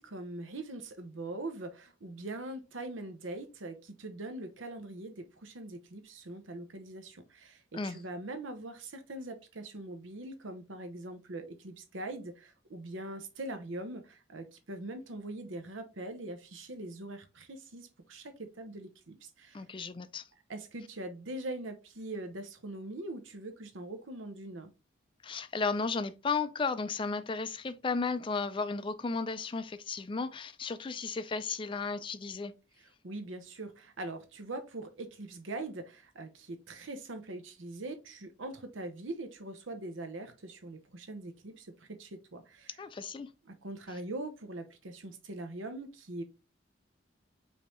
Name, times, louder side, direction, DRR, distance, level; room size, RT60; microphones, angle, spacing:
voice 1, 0.0-19.6 20.5-24.7 32.8-42.8 43.6-46.2, right 2 dB, 85° right, 0.8 m, -42 dB
voice 2, 19.5-20.2 25.2-32.5 42.8-43.3, left 4 dB, 25° left, 0.3 m, -34 dB
5.2 x 2.8 x 3.0 m
head